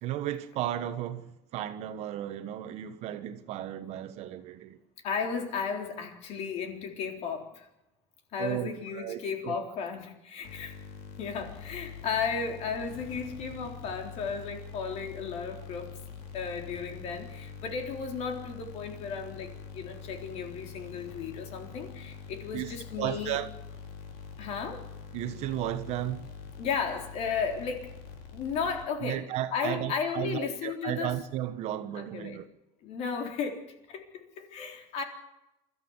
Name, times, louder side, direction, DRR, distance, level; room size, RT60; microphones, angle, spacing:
voice 1, 0.0-4.8 8.4-9.6 13.6-13.7 22.5-23.5 25.1-26.3 29.0-32.4, right 12 dB, 50° right, 1.3 m, -34 dB
voice 2, 5.0-7.7 8.3-10.8 11.2-16.0 16.3-23.4 24.4-24.9 26.6-27.9 28.3-31.1 31.9-32.4 32.8-35.0, left 6 dB, 50° left, 3.8 m, -34 dB
sound 1, 10.4-29.2, left 5 dB, 70° left, 4.9 m, -45 dB
28.0 x 13.5 x 8.1 m
cardioid pair, 165°, 14 cm